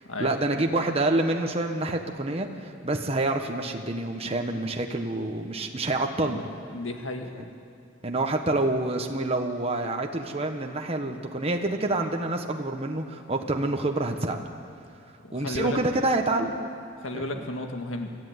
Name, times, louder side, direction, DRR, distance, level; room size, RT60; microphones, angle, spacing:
voice 1, 0.2-6.4 8.0-14.4 15.3-16.6 17.1-17.2, right 2 dB, 30° right, 3 dB, 1.2 m, -27 dB
voice 2, 6.7-7.3 15.2-15.8 17.0-18.2, left 2 dB, 85° left, 4 dB, 1.8 m, -33 dB
25.0 x 14.0 x 9.5 m, 2.5 s
head